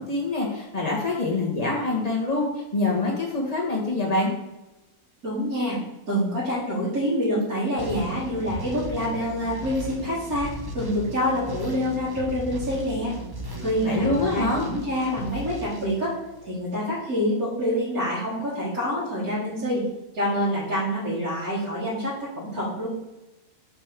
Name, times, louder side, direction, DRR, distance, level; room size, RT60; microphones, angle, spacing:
voice 1, 0.0-4.3 13.8-14.7, left 2 dB, 25° left, -3 dB, 1.5 m, -25 dB
voice 2, 5.2-5.8 6.1-13.1 13.6-16.2 16.4-19.8 20.1-22.9, equal, 70° right, -12 dB, 2.7 m, -26 dB
sound 1, 7.8-16.6, right 1 dB, 25° right, 0.5 m, -36 dB
5.2 x 4.4 x 5.9 m, 0.97 s
omnidirectional pair, 1.6 m